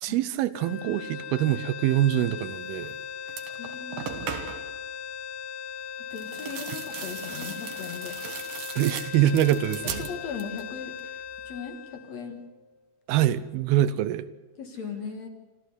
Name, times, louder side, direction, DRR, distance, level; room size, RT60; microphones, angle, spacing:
voice 1, 0.0-3.0 8.8-10.1 13.1-14.3, right 12 dB, 85° right, 2.8 m, -24 dB
sound 1, 0.5-12.8, left 8 dB, 80° left, 1.5 m, -39 dB
sound 2, 2.8-3.0 3.3-4.8 6.1-10.7 11.0-11.6, right 8 dB, 70° right, 3.1 m, -38 dB
voice 2, 3.6-4.1 6.1-8.2 10.0-11.0 11.5-12.4 14.6-15.3, left 6 dB, 55° left, 2.4 m, -38 dB
27.0 x 14.0 x 8.0 m
omnidirectional pair, 4.3 m